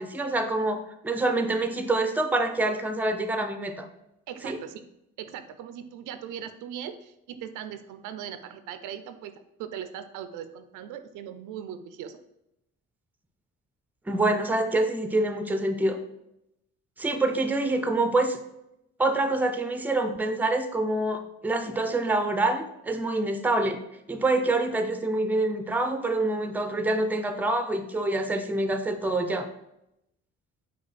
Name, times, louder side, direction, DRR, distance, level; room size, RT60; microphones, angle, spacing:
voice 1, 0.0-3.9 4.4-4.6 14.1-16.0 17.0-18.4 19.0-23.8 24.1-29.5, right 2 dB, 5° right, 7 dB, 0.4 m, -26 dB
voice 2, 4.3-4.8 5.2-9.3 9.6-12.2, right 9 dB, 90° right, 10 dB, 0.5 m, -39 dB
5.1 x 2.2 x 4.1 m, 0.83 s
cardioid pair, 90°, 30 cm